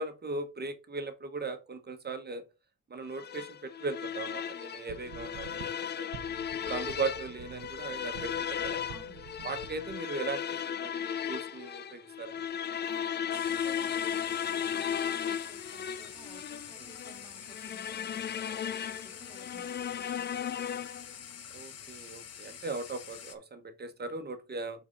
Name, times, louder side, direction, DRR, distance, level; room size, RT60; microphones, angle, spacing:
voice 1, 0.0-2.4 2.9-5.7 6.0-6.1 6.7-8.8 9.4-12.4 21.5-24.8, right 3 dB, 35° right, 1.2 m, -38 dB
sound 1, 3.1-21.2, left 8 dB, 35° left, 0.4 m, -36 dB
sound 2, 4.9-10.0, right 10 dB, 80° right, 0.9 m, -48 dB
voice 2, 8.9-9.2 12.8-20.9, right 1 dB, 10° right, 2.3 m, -55 dB
sound 3, 13.3-23.4, left 8 dB, 55° left, 1.1 m, -47 dB
7.4 x 4.1 x 4.0 m
cardioid pair, 90°, 30 cm